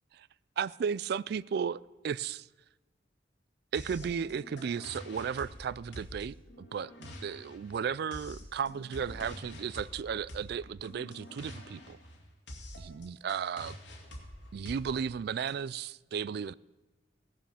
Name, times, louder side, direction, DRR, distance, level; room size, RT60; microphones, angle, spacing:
voice 1, 0.6-2.5 3.7-12.0 12.8-13.8 14.5-16.5, right 7 dB, 55° right, 0.3 m, -35 dB
sound 1, 3.7-15.5, left 1 dB, 65° left, 2.4 m, -47 dB
17.0 x 7.3 x 7.0 m
head